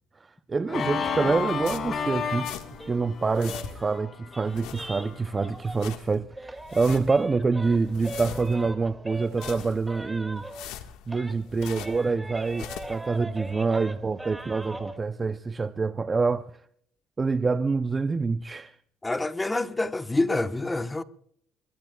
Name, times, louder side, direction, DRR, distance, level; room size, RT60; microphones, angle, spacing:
voice 1, 0.5-2.6 2.9-10.8 11.1-16.5 17.2-18.7, right 4 dB, 25° right, 0.6 m, -26 dB
Organ, 0.7-5.5, left 6 dB, 50° left, 2.8 m, -33 dB
sound 1, 0.9-6.0 6.3-10.8 11.1-15.0, right 1 dB, 10° right, 2.2 m, -41 dB
sound 2, 1.6-2.9 3.2-4.0 4.4-5.2 5.5-6.2 6.6-7.3 7.6-8.7 9.2-10.0 10.4-12.1 12.4-13.1, left 11 dB, 85° left, 1.6 m, -42 dB
voice 2, 19.0-21.0, left 2 dB, 15° left, 1.1 m, -27 dB
24.0 x 20.5 x 2.3 m
cardioid pair, 95°, 0 cm